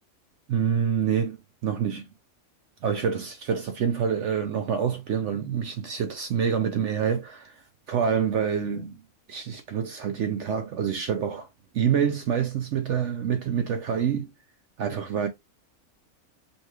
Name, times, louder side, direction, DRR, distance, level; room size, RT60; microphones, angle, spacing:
voice 1, 0.5-2.1 2.8-9.0 9.3-11.5 11.7-14.3 14.8-15.3, right 7 dB, 65° right, 0.8 m, -27 dB
5.3 x 3.1 x 2.4 m
omnidirectional pair, 1.5 m